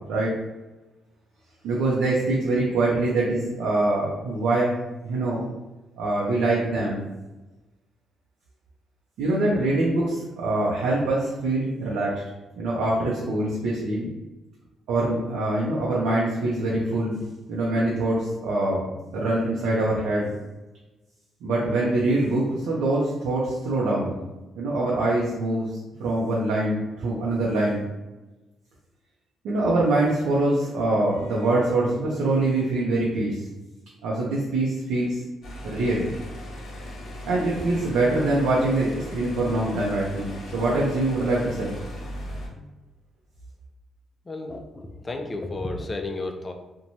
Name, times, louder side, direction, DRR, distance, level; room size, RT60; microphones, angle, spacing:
voice 1, 1.6-5.4 6.0-7.0 9.2-12.2 12.6-14.1 14.9-18.8 19.1-20.3 21.4-24.1 24.5-25.7 26.0-27.9 29.4-33.4 34.0-35.2 35.6-36.1 37.3-41.8, right 2 dB, 85° right, -5 dB, 0.5 m, -24 dB
sound 1, 35.4-42.5, equal, 70° left, 0.8 m, -38 dB
voice 2, 44.3-46.5, left 2 dB, 25° left, 5 dB, 0.4 m, -32 dB
3.0 x 2.2 x 2.6 m, 1.1 s
cardioid pair, 90°, 0 cm